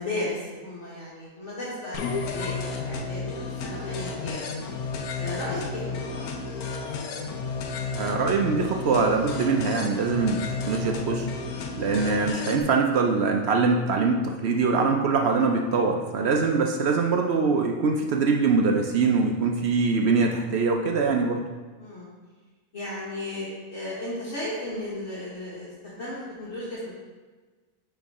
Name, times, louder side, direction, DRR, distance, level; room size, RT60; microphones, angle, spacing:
voice 1, 0.0-4.4 5.2-6.2 16.4-16.5 21.8-22.1 22.7-26.9, left 1 dB, 50° left, -8 dB, 1.6 m, -35 dB
sound 1, 1.9-12.6, left 4 dB, 70° left, 1.1 m, -32 dB
voice 2, 7.9-10.4 10.7-11.3 11.8-21.4, right 4 dB, 70° right, 2 dB, 0.6 m, -23 dB
9.4 x 3.5 x 3.6 m, 1.3 s
omnidirectional pair, 1.7 m